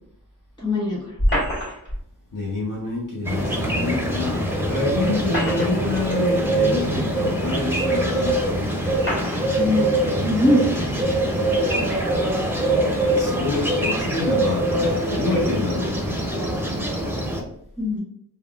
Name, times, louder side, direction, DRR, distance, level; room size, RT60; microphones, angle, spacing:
voice 1, 0.6-1.2 9.5-10.6 11.2-12.1 17.8-18.0, left 1 dB, 10° left, -6 dB, 1.5 m, -23 dB
sound 1, 1.2-2.0 3.7-3.8 5.0-6.0 6.8-6.9 7.9-8.0 9.0-9.5, equal, 30° left, 1.3 m, -25 dB
voice 2, 2.3-8.4 13.1-16.2, left 3 dB, 55° left, -4 dB, 0.8 m, -27 dB
sound 2, 3.2-17.4, right 1 dB, 5° right, 0.5 m, -23 dB
3.3 x 2.2 x 2.4 m, 0.74 s
wide cardioid pair, 60°, 38 cm